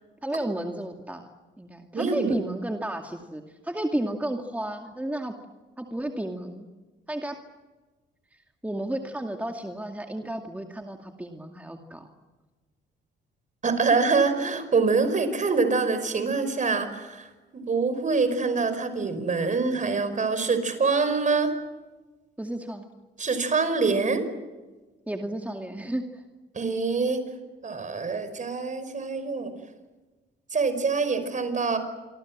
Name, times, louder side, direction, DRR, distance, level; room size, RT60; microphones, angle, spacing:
voice 1, 0.2-1.3 1.6-5.3 5.8-6.7 7.1-7.3 8.6-12.1 22.4-22.8 25.1-26.2, right 1 dB, 5° right, 3 dB, 2.3 m, -32 dB
voice 2, 1.9-2.4 13.6-17.3 17.5-21.5 23.2-24.3 26.5-27.2 27.6-29.5 30.5-31.8, right 4 dB, 40° right, 10 dB, 5.2 m, -25 dB
28.0 x 24.5 x 7.5 m, 1.3 s
cardioid pair, 90°, 20 cm